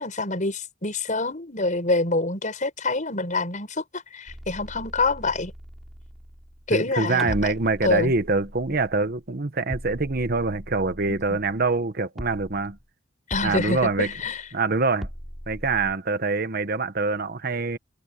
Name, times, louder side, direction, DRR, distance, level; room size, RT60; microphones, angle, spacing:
voice 1, 0.0-5.5 6.7-7.5 7.8-8.1 11.1-11.4 13.3-14.4, left 2 dB, 45° left, 6.5 m, -26 dB
sound 1, 4.3-6.9 7.2-9.3 9.7-11.9 12.2-12.9 13.3-14.5 15.0-16.0, equal, ahead, 7.0 m, -40 dB
voice 2, 6.7-12.8 13.4-14.1 14.5-15.1 15.5-17.8, right 3 dB, 55° right, 1.2 m, -25 dB
head